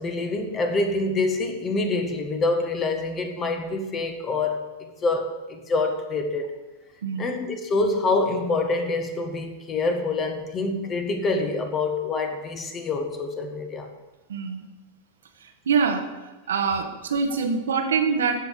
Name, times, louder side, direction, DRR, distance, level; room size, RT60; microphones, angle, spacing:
voice 1, 0.0-6.6 7.2-13.9, left 3 dB, 25° left, 5 dB, 1.7 m, -26 dB
voice 2, 14.3-14.7 15.4-16.1 16.5-18.4, right 5 dB, 65° right, 5 dB, 1.4 m, -24 dB
13.5 x 5.6 x 8.4 m, 1.1 s
figure-of-eight pair, 90°, 0 cm